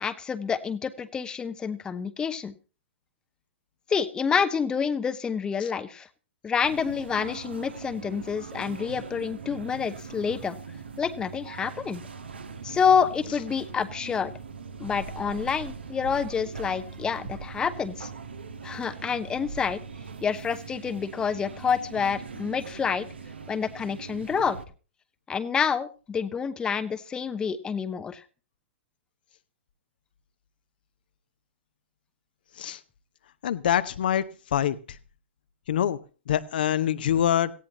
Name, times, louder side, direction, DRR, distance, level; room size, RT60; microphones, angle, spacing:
voice 1, 0.0-2.5 3.9-6.1 6.4-10.6 11.0-12.0 12.6-14.3 14.8-18.1 18.6-19.8 20.2-23.1 23.5-24.6 25.3-28.2, left 6 dB, 15° left, 12 dB, 0.8 m, -28 dB
sound 1, 6.6-24.6, right 5 dB, 65° right, 1.6 m, -41 dB
voice 2, 33.4-34.2 34.5-34.8 35.7-36.0 36.3-37.5, left 10 dB, 55° left, 12 dB, 0.9 m, -24 dB
18.0 x 15.5 x 2.9 m, 0.36 s
figure-of-eight pair, 110°, 6 cm